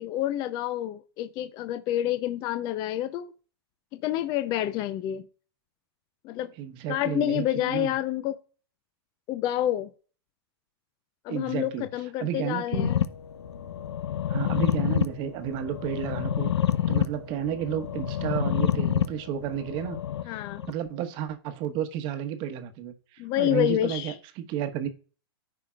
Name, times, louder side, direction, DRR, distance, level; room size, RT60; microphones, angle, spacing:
voice 1, 0.0-3.3 3.9-5.3 6.2-6.5 6.9-8.4 9.3-9.9 11.2-13.0 20.3-20.6 23.2-24.2, left 13 dB, 30° left, 0.5 m, -28 dB
voice 2, 6.6-7.9 11.3-11.9 12.2-12.9 14.3-16.5 16.9-20.0 20.2-20.4 20.7-24.9, right 10 dB, 35° right, 1.1 m, -32 dB
sound 1, 12.7-20.7, left 10 dB, 85° left, 0.8 m, -28 dB
14.0 x 5.0 x 2.4 m
hypercardioid pair, 140°, 13 cm